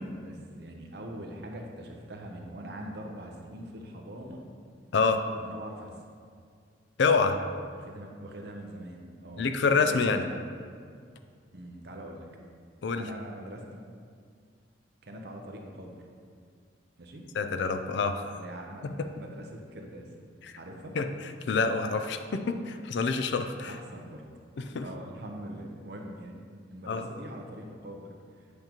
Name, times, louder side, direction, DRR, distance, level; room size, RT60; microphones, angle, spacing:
voice 1, 0.0-4.4 5.3-5.9 7.7-10.2 11.5-12.3 13.0-13.8 15.0-16.0 17.0-17.3 18.4-20.1 20.6-21.0 23.7-24.2 24.8-26.4 26.7-28.5, right 1 dB, 55° right, 1 dB, 0.7 m, -43 dB
voice 2, 7.0-7.4 9.4-10.3 12.8-13.0 17.3-18.3 18.8-19.1 21.0-21.1 21.5-23.8 24.6-24.9 26.9-27.1, left 4 dB, 60° left, 8 dB, 0.4 m, -27 dB
8.0 x 5.2 x 3.0 m, 2.1 s
head